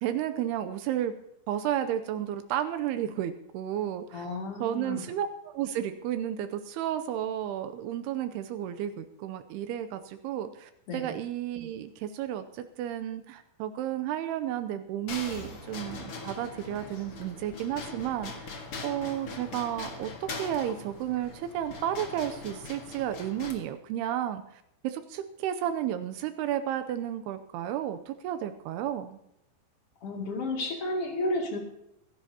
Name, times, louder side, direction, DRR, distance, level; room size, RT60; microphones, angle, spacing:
voice 1, 0.0-1.1 1.5-4.2 4.6-18.5 18.8-24.4 24.8-29.2, right 11 dB, 90° right, 9 dB, 2.3 m, -32 dB
voice 2, 4.1-5.0 10.9-11.1 30.0-31.6, left 2 dB, 40° left, 1 dB, 2.3 m, -32 dB
sound 1, 15.1-23.5, left 3 dB, 70° left, 1.3 m, -41 dB
23.5 x 12.0 x 2.8 m, 0.79 s
omnidirectional pair, 5.5 m